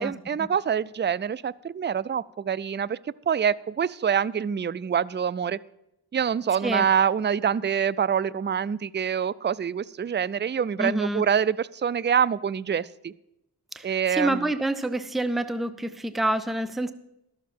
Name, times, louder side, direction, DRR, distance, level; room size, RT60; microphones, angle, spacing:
voice 1, 0.0-3.0 3.3-5.6 6.1-13.1 13.8-14.4, right 7 dB, 30° right, 19 dB, 0.4 m, -25 dB
voice 2, 10.8-11.2 13.7-16.9, right 1 dB, ahead, 11 dB, 0.7 m, -27 dB
12.0 x 7.3 x 7.5 m, 0.85 s
wide cardioid pair, 45°, 40 cm